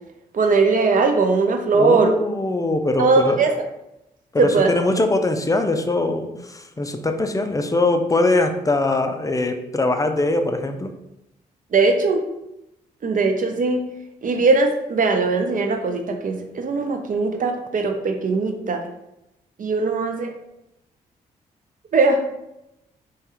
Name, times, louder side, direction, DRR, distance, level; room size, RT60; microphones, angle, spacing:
voice 1, 0.3-2.1 3.0-3.5 4.4-4.7 11.7-12.2 13.0-13.8 14.2-18.8 19.6-20.3 21.9-22.2, right 4 dB, 45° right, 4 dB, 0.5 m, -19 dB
voice 2, 1.7-3.4 4.3-10.9, left 2 dB, 20° left, 6 dB, 0.4 m, -22 dB
2.8 x 2.3 x 3.3 m, 0.88 s
hypercardioid pair, 40°, 18 cm